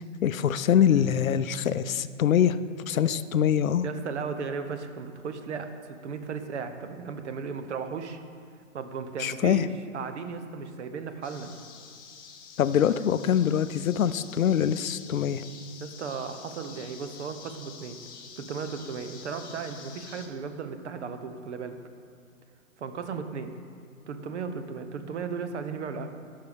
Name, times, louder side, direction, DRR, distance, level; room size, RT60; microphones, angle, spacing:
voice 1, 0.2-3.9 9.2-9.7 12.6-15.4, left 9 dB, 90° left, 14 dB, 0.6 m, -24 dB
voice 2, 3.8-8.2 8.7-9.7 9.9-11.5 15.8-18.0 18.4-21.8 22.8-23.5 24.1-26.1, right 5 dB, 60° right, 8 dB, 1.1 m, -35 dB
sound 1, 11.2-20.3, left 6 dB, 15° left, 0.5 m, -47 dB
12.5 x 5.7 x 5.2 m, 2.3 s
hypercardioid pair, 155°, 40 cm